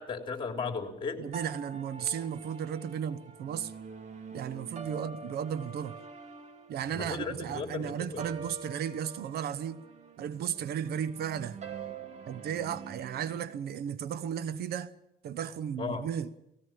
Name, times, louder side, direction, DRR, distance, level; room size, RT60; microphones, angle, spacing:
voice 1, 0.0-1.2 6.9-8.2 15.8-16.0, left 5 dB, 30° left, 3.5 m, -35 dB
voice 2, 1.2-3.7 4.3-6.0 6.7-9.8 10.2-11.6 12.3-14.9 15.2-16.3, right 8 dB, 70° right, 1.0 m, -35 dB
sound 1, 1.3-13.5, right 5 dB, 45° right, 2.6 m, -45 dB
18.5 x 17.0 x 8.9 m
cardioid pair, 110°, 17 cm